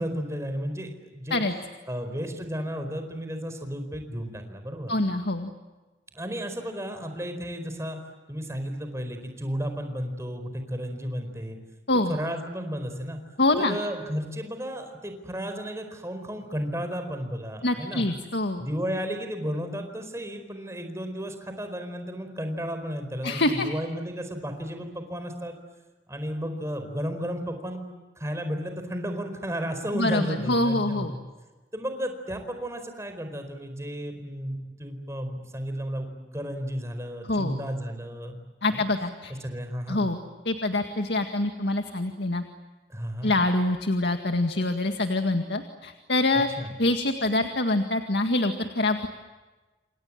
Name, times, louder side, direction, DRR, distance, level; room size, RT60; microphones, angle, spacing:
voice 1, 0.0-1.4 1.9-4.9 6.1-8.0 8.3-11.6 12.1-13.2 13.6-18.1 18.6-25.6 26.1-27.9 28.2-31.1 31.7-38.4 38.7-38.9 39.4-40.0 42.9-43.4 46.6-46.7, equal, 15° right, 7 dB, 4.6 m, -33 dB
voice 2, 4.9-5.5 11.9-12.2 13.4-13.8 17.6-18.7 23.2-23.7 29.9-31.1 37.3-37.5 38.6-39.3 39.9-40.2 40.5-42.4 43.2-46.5 46.8-49.1, left 2 dB, 75° left, 5 dB, 2.0 m, -25 dB
28.5 x 27.5 x 7.5 m, 1.2 s
head